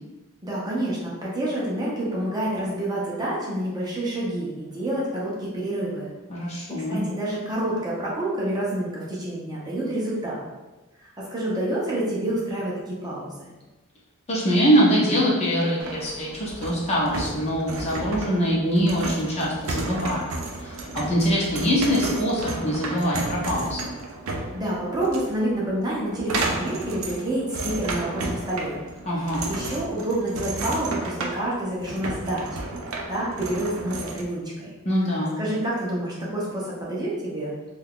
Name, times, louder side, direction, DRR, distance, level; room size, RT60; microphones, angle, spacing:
voice 1, 0.4-6.1 6.4-6.6 6.9-10.4 11.0-13.5 24.5-28.8 29.1-32.7 33.1-34.7 35.0-37.5, right 1 dB, 20° right, -6 dB, 0.6 m, -28 dB
voice 2, 6.3-7.0 14.3-20.3 20.6-23.9 29.0-29.5 34.9-35.4, equal, 30° left, -5 dB, 0.7 m, -23 dB
sound 1, 15.8-34.2, right 2 dB, 65° right, 0.5 m, -33 dB
2.7 x 2.3 x 3.5 m, 1.1 s
head